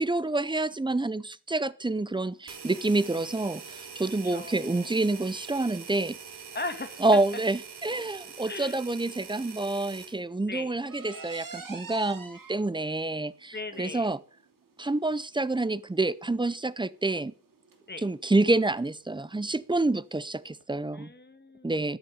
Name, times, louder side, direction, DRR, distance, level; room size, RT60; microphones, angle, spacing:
voice 1, 0.0-6.2 7.0-14.2 14.8-17.3 18.0-21.1 21.6-22.0, right 2 dB, 10° right, 0.6 m, -28 dB
sound 1, 2.0-20.6, right 4 dB, 55° right, 2.9 m, -51 dB
sound 2, 2.5-10.2, right 6 dB, 90° right, 3.3 m, -44 dB
voice 2, 4.2-4.9 6.5-7.0 8.5-8.8 10.5-10.7 13.5-14.1 17.9-18.0 20.9-21.8, left 3 dB, 25° left, 1.8 m, -38 dB
13.5 x 10.5 x 5.3 m
wide cardioid pair, 130°, 39 cm